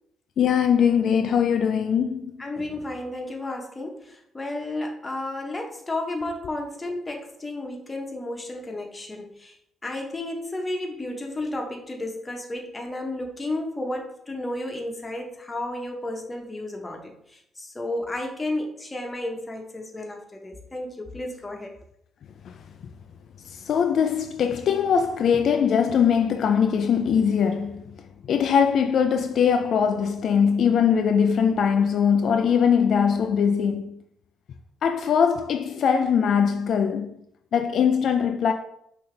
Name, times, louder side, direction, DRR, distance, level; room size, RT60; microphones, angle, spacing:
voice 1, 0.4-2.4 22.4-22.6 23.5-34.0 34.8-37.2 37.5-38.5, left 7 dB, 65° left, 0.3 m, -21 dB
voice 2, 2.4-9.6 9.8-21.7, left 1 dB, 20° left, 1.0 m, -32 dB
5.5 x 2.8 x 3.3 m
cardioid pair, 90°, 0 cm